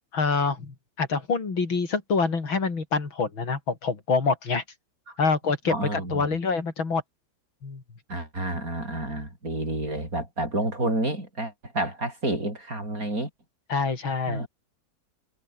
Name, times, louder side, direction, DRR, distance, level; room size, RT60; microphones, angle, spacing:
voice 1, 0.1-4.6 5.2-7.0 7.6-7.8 13.7-14.5, left 4 dB, 90° left, 4.4 m, -26 dB
voice 2, 5.7-6.4 8.1-13.3 14.3-14.5, right 2 dB, 45° right, 8.7 m, -29 dB
omnidirectional pair, 2.1 m